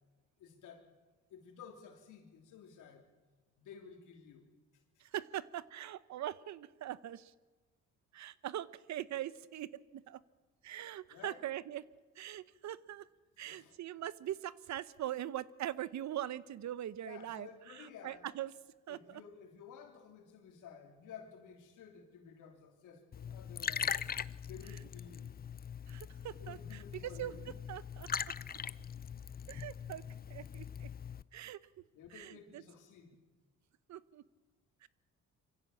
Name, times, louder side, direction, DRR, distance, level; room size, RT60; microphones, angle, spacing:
voice 1, 0.4-0.9 1.3-3.1 3.6-4.5 11.1-11.4 13.4-13.7 17.0-18.2 18.9-24.0 24.4-25.3 26.4-27.4 31.9-33.2, left 7 dB, 85° left, 4 dB, 3.4 m, -53 dB
voice 2, 5.0-7.3 8.1-10.2 10.6-11.8 12.1-13.1 13.4-18.5 18.9-19.2 24.7-24.8 25.9-27.3 27.7-28.1 29.5-30.0 30.3-30.9 31.3-31.6 32.1-32.6 33.9-34.2 34.8-34.9, right 12 dB, 65° right, 18 dB, 0.9 m, -42 dB
Liquid, 23.1-31.2, left 7 dB, 30° left, 0.6 m, -41 dB
24.5 x 15.5 x 7.2 m, 1.3 s
cardioid pair, 90°, 30 cm